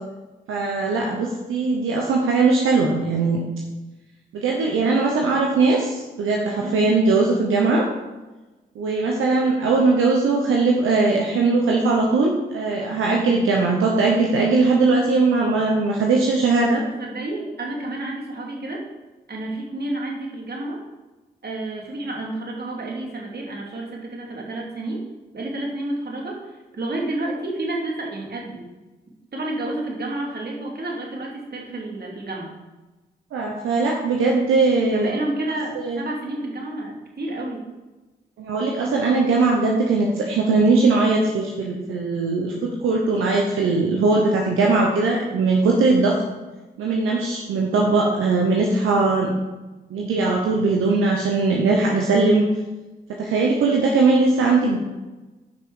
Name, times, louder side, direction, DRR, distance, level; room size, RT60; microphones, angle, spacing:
voice 1, 0.5-3.4 4.3-7.9 8.7-16.8 33.3-35.1 35.7-36.0 38.4-46.2 46.8-49.3 49.9-52.4 53.2-54.8, right 3 dB, 80° right, -1 dB, 1.1 m, -20 dB
voice 2, 16.7-18.8 19.3-20.8 21.4-25.1 25.3-28.7 29.3-32.5 34.9-37.6, right 2 dB, 50° right, -2 dB, 2.8 m, -30 dB
9.4 x 5.9 x 4.9 m, 1.2 s
supercardioid pair, 40°, 20 cm